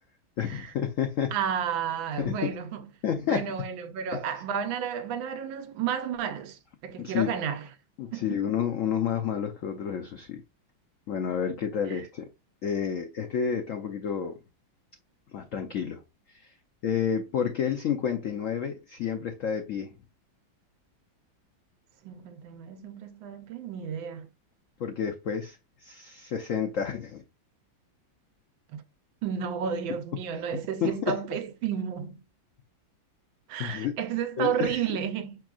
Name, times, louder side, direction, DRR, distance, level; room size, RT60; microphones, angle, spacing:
voice 1, 0.4-1.3 2.2-2.5 3.0-3.5 4.1-4.2 7.0-7.3 8.0-10.4 11.1-12.3 12.6-14.4 15.3-16.0 16.3-16.5 16.8-19.9 24.8-27.2 30.5-31.2 33.6-34.0 34.4-34.8, left 8 dB, 90° left, 0.7 m, -30 dB
voice 2, 1.3-2.9 3.3-7.7 8.1-8.4 11.9-12.0 22.0-24.3 28.7-28.8 29.2-32.2 33.5-35.4, right 8 dB, 80° right, 1.4 m, -32 dB
6.1 x 3.5 x 2.3 m
omnidirectional pair, 2.2 m